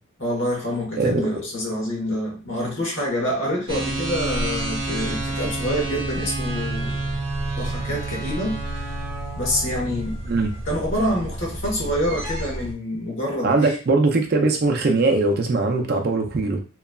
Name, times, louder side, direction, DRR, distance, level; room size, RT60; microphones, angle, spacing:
voice 1, 0.2-7.1 7.5-9.0 9.3-10.2 10.6-13.8, equal, 60° left, -2 dB, 1.1 m, -27 dB
voice 2, 1.0-1.3 10.3-10.5 13.4-16.6, right 3 dB, 45° right, 3 dB, 0.4 m, -20 dB
sound 1, 3.7-12.7, right 2 dB, 30° right, 0.9 m, -29 dB
2.9 x 2.3 x 2.2 m, 0.35 s
head